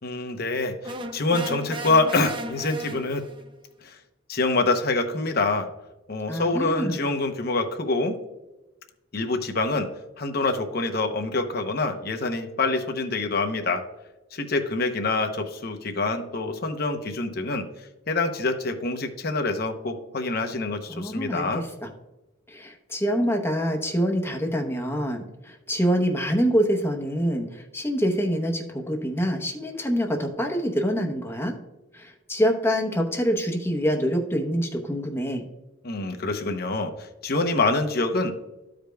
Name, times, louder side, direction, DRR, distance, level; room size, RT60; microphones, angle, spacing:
voice 1, 0.0-3.3 3.8-4.0 4.3-5.7 6.1-8.2 9.1-9.9 10.2-13.8 14.3-17.7 18.1-21.6 35.8-38.3, left 3 dB, 50° left, 5 dB, 0.8 m, -26 dB
sound 1, 0.8-3.5, right 1 dB, 25° right, 0.5 m, -35 dB
voice 2, 6.3-7.0 20.9-21.9 22.5-31.5 31.9-35.4, equal, 10° left, 3 dB, 0.8 m, -25 dB
14.0 x 5.0 x 2.3 m, 1.0 s
head